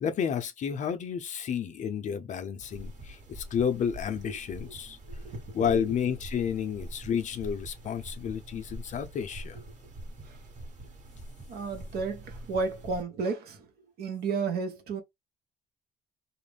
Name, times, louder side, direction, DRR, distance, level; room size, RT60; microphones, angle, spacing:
voice 1, 0.0-5.0 5.5-9.6, left 8 dB, 45° left, 0.6 m, -31 dB
sound 1, 2.6-13.0, right 1 dB, 45° right, 1.3 m, -44 dB
voice 2, 5.0-5.9 9.5-9.6 10.2-10.4 11.5-13.7 14.0-15.0, right 4 dB, 70° right, 0.9 m, -33 dB
2.4 x 2.1 x 3.3 m
cardioid pair, 110°, 17 cm